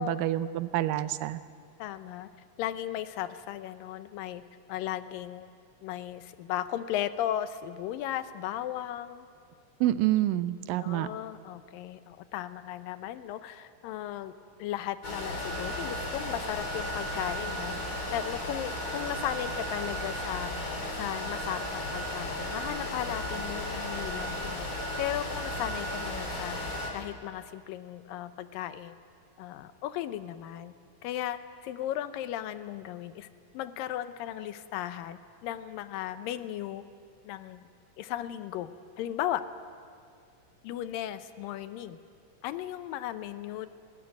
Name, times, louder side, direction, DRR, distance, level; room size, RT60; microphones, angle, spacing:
voice 1, 0.0-1.4 9.8-11.1, right 14 dB, 85° right, 13 dB, 2.3 m, -27 dB
voice 2, 1.8-2.3 2.6-4.4 4.7-5.5 5.8-9.3 10.8-14.3 14.6-17.8 18.1-20.5 20.9-26.6 26.9-29.0 29.4-30.7 31.0-33.3 33.5-36.8 37.2-37.6 38.0-39.5 40.6-42.0 42.4-43.7, left 12 dB, 85° left, 12 dB, 2.5 m, -36 dB
sound 1, 15.0-26.9, left 1 dB, 35° left, 3.7 m, -34 dB
21.0 x 18.0 x 9.3 m, 2.2 s
omnidirectional pair, 3.9 m